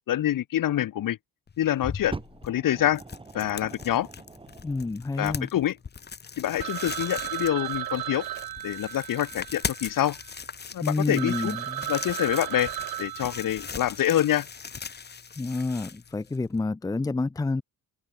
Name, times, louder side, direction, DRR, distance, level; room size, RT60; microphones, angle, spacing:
voice 1, 0.1-1.2 1.6-2.2 2.4-3.0 3.3-4.1 5.2-5.8 6.4-8.3 8.6-10.2 10.7-11.5 11.9-12.7 13.0-14.5, left 12 dB, 60° left, 6.2 m, -26 dB
sound 1, 1.5-16.6, left 6 dB, 30° left, 3.8 m, -40 dB
Fire, 2.1-4.9 5.8-5.9, right 3 dB, 15° right, 4.9 m, -42 dB
voice 2, 4.6-5.5 10.8-11.9 15.4-17.6, left 3 dB, 10° left, 0.6 m, -28 dB
Telephone, 6.6-10.4 10.9-11.0 11.2-14.0, right 13 dB, 75° right, 5.6 m, -35 dB
cardioid pair, 175°, 36 cm